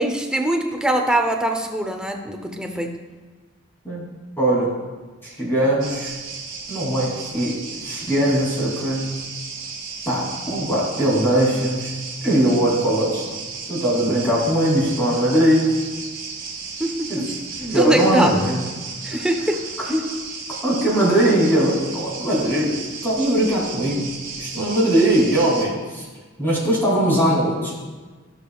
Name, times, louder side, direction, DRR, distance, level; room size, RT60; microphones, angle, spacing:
voice 1, 0.0-3.0 16.8-17.3 17.8-18.4 19.0-19.6, right 1 dB, 5° right, 4 dB, 0.6 m, -22 dB
voice 2, 4.4-4.7 5.2-6.1 6.7-9.0 10.1-11.9 12.2-13.2 13.7-15.7 17.1-17.2 17.6-18.6 19.1-19.3 19.9-20.1 20.6-22.7 23.0-24.0 24.4-26.1 26.4-27.7, right 1 dB, 10° left, -6 dB, 2.8 m, -20 dB
sound 1, 5.8-25.6, right 4 dB, 50° right, 1.8 m, -34 dB
15.0 x 6.7 x 2.3 m, 1.3 s
head